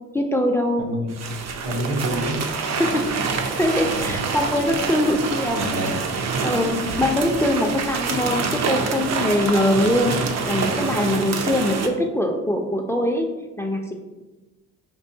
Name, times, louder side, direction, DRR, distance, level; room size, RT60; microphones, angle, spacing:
voice 1, 0.1-0.8 2.0-2.1 2.8-3.1 3.6-5.7 6.4-10.2 10.4-13.3 13.6-13.9, left 1 dB, 10° left, 2 dB, 0.4 m, -22 dB
voice 2, 0.8-1.2 1.6-2.4 4.0-4.2 5.5-6.2, right 1 dB, 80° right, 0 dB, 1.0 m, -27 dB
sound 1, 1.1-11.9, right 5 dB, 60° right, 0.6 m, -26 dB
5.3 x 2.8 x 2.7 m, 1.1 s
cardioid pair, 90°, 30 cm